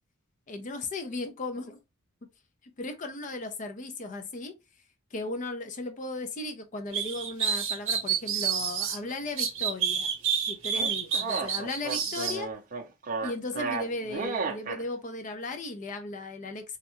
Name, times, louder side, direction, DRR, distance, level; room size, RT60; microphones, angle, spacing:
voice 1, 0.5-1.8 2.8-4.5 5.1-10.1 10.5-12.5 13.2-16.8, left 2 dB, 35° left, 0.5 m, -36 dB
sound 1, 6.9-9.0 9.4-12.4, right 7 dB, 65° right, 0.8 m, -28 dB
sound 2, 10.7-14.8, right 4 dB, 40° right, 0.5 m, -33 dB
3.5 x 2.1 x 2.9 m
head